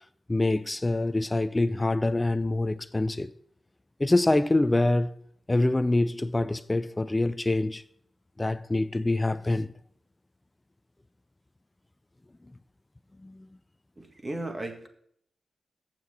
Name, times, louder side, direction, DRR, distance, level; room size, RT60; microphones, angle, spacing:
voice 1, 0.3-3.3 4.0-5.1 5.5-7.8 8.4-9.7 13.2-13.5, left 2 dB, 25° left, 0.5 m, -25 dB
voice 2, 14.0-14.9, right 2 dB, 35° right, 1.8 m, -35 dB
7.3 x 6.1 x 7.0 m
supercardioid pair, 45°, 0 cm